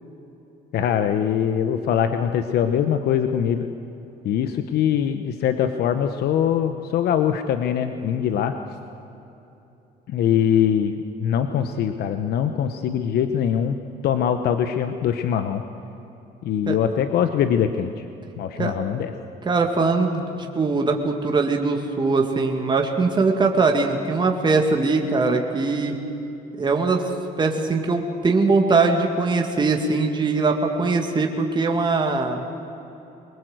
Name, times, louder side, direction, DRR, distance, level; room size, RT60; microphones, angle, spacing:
voice 1, 0.7-3.7 4.2-8.5 10.1-13.8 14.0-15.6 16.4-18.0 18.4-19.1, left 9 dB, 70° left, 8 dB, 1.1 m, -22 dB
voice 2, 19.5-25.9 26.6-27.0 27.4-32.4, right 3 dB, 25° right, 2 dB, 2.1 m, -21 dB
23.5 x 20.0 x 8.0 m, 3.0 s
cardioid pair, 110°, 17 cm